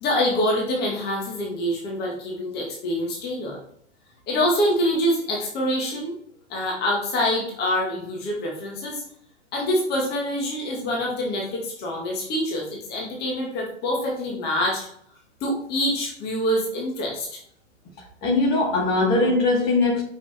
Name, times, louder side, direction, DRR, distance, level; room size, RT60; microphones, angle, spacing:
voice 1, 0.0-3.6 4.3-6.1 6.5-9.0 9.5-14.9 15.4-17.3, left 1 dB, 30° left, -2 dB, 1.9 m, -25 dB
voice 2, 18.2-20.0, left 2 dB, 45° left, -1 dB, 2.1 m, -20 dB
5.7 x 4.8 x 3.5 m, 0.66 s
hypercardioid pair, 115°, 36 cm